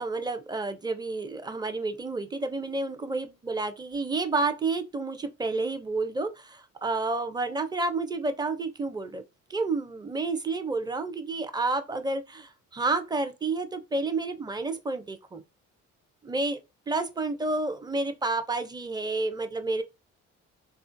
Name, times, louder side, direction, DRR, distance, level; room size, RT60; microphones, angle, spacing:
voice 1, 0.0-9.2 9.5-15.4 16.2-16.6 16.9-19.8, right 3 dB, 15° right, 0.5 m, -30 dB
3.7 x 2.4 x 2.5 m
cardioid pair, 90°, 30 cm